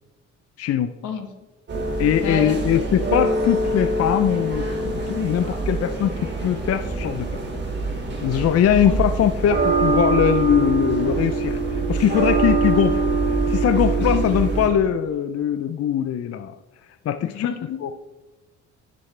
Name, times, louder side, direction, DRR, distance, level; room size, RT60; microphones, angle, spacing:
voice 1, 0.6-0.9 2.0-7.3 8.2-13.0 13.5-16.5 17.1-17.5 17.8-17.9, left 9 dB, 55° left, 10 dB, 0.5 m, -21 dB
sound 1, 1.7-14.7, right 3 dB, 35° right, 2.7 m, -24 dB
voice 2, 2.2-2.6 8.8-9.0 14.0-14.5 17.2-17.9, left 6 dB, 80° left, 6 dB, 1.4 m, -29 dB
10.5 x 7.6 x 3.3 m, 1.2 s
cardioid pair, 90°, 30 cm